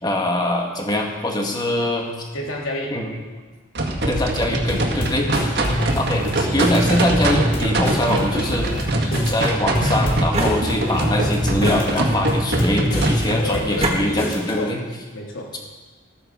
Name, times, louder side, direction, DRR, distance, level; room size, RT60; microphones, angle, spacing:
voice 1, 0.0-2.3 2.9-3.1 4.1-5.3 6.0-8.7 9.2-14.8, left 1 dB, 20° left, 1 dB, 1.8 m, -23 dB
voice 2, 2.3-3.0 5.7-6.0 13.4-14.0 14.5-14.7 15.1-15.5, left 1 dB, 70° left, -2 dB, 3.3 m, -30 dB
sound 1, 3.8-13.5, right 1 dB, 55° right, 1.9 m, -22 dB
sound 2, 4.7-14.6, left 1 dB, 40° left, 2.8 m, -29 dB
sound 3, 7.8-8.8 9.8-11.1 11.6-12.5 13.2-14.0, right 2 dB, 30° right, 1.7 m, -28 dB
14.5 x 13.5 x 4.9 m, 1.3 s
head